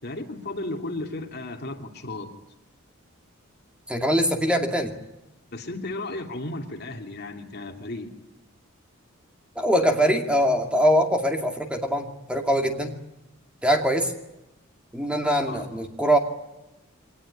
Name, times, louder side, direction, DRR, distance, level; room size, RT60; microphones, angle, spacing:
voice 1, 0.0-2.4 5.5-8.2 15.5-15.8, left 2 dB, 50° left, 3 dB, 2.9 m, -34 dB
voice 2, 3.9-4.9 9.6-13.0 13.6-14.1 14.9-16.2, equal, 5° right, 3 dB, 2.3 m, -22 dB
24.0 x 19.5 x 10.0 m, 0.94 s
head